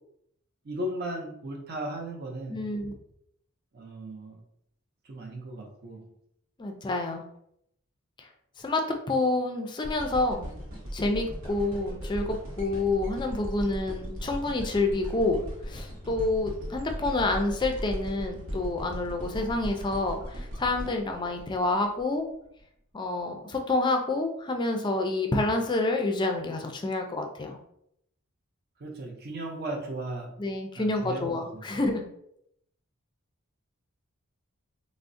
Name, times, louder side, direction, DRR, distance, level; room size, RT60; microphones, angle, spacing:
voice 1, 0.6-2.6 3.7-4.4 5.1-6.0 28.8-30.3 30.8-31.6, right 1 dB, 50° right, 0 dB, 0.5 m, -36 dB
voice 2, 2.5-3.0 6.6-7.2 8.2-8.3 8.6-10.5 10.9-22.3 22.9-27.6 30.4-32.0, left 2 dB, 20° left, 4 dB, 0.4 m, -28 dB
sound 1, 9.8-22.0 22.6-22.7, equal, 70° right, 0.9 m, -38 dB
3.5 x 2.0 x 2.5 m, 0.74 s
head